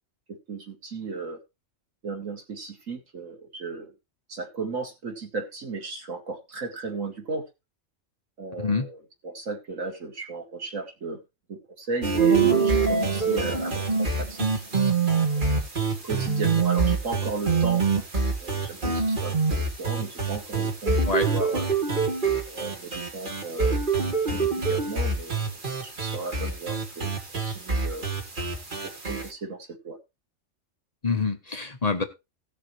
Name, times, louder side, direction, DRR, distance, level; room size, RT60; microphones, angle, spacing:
voice 1, 0.5-1.4 2.0-3.9 4.3-7.4 8.4-11.2 11.5-14.5 15.3-15.6 16.0-17.8 18.4-21.0 21.3-21.7 22.5-23.8 24.3-25.5 25.8-27.1 27.5-28.1 28.8-30.0, right 3 dB, 85° right, 2 dB, 2.4 m, -35 dB
sound 1, 12.0-29.3, right 4 dB, 40° right, 1.7 m, -25 dB
voice 2, 31.0-32.0, left 4 dB, 35° left, 6 dB, 0.9 m, -26 dB
16.5 x 6.7 x 3.1 m, 0.25 s
omnidirectional pair, 1.3 m